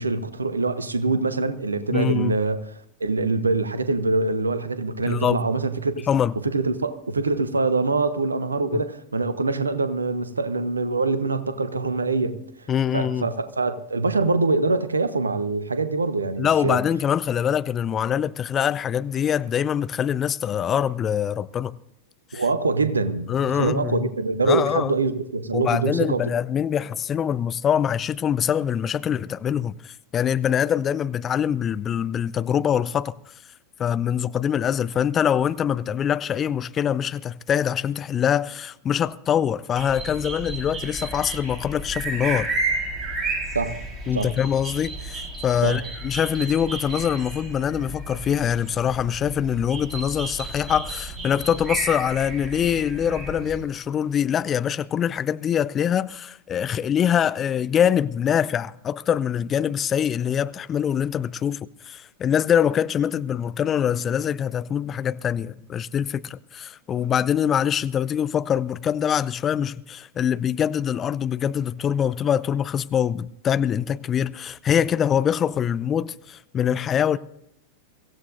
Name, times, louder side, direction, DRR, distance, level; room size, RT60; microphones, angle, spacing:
voice 1, 0.0-6.1 6.4-16.8 22.3-26.3 43.5-43.8 44.1-44.3 45.6-45.8, right 3 dB, 75° right, 1.0 m, -24 dB
voice 2, 1.9-2.4 5.0-5.4 6.1-6.3 8.7-8.8 12.7-13.3 16.4-21.7 22.3-22.4 23.3-24.1 24.5-24.9 25.5-33.1 33.8-42.5 44.1-77.2, left 9 dB, 25° left, 0.5 m, -24 dB
sound 1, 39.8-53.6, right 2 dB, 20° right, 4.1 m, -32 dB
24.0 x 15.5 x 2.6 m
figure-of-eight pair, 90°, 0 cm